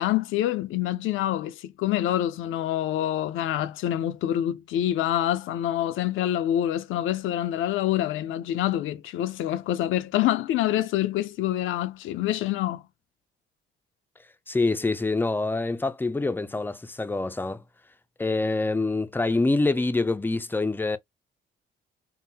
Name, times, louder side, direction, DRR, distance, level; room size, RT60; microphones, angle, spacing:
voice 1, 0.0-12.8, left 12 dB, 85° left, 0.5 m, -26 dB
voice 2, 14.5-17.6 18.2-21.0, left 3 dB, 10° left, 0.4 m, -25 dB
3.7 x 2.0 x 2.7 m
cardioid pair, 90°, 20 cm